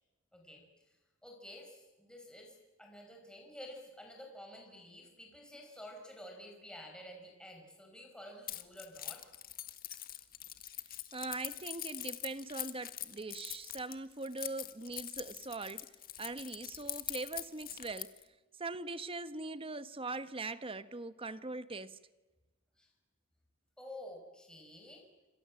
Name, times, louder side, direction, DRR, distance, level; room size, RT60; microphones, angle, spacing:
voice 1, 0.3-0.6 1.2-9.3 22.8-22.9 23.8-25.0, left 1 dB, 5° left, 6.0 m, -51 dB
Keys jangling, 8.5-18.2, left 12 dB, 45° left, 1.7 m, -43 dB
voice 2, 11.1-15.9 16.2-18.2 18.6-22.0, right 3 dB, 25° right, 1.1 m, -41 dB
27.5 x 27.0 x 7.7 m
head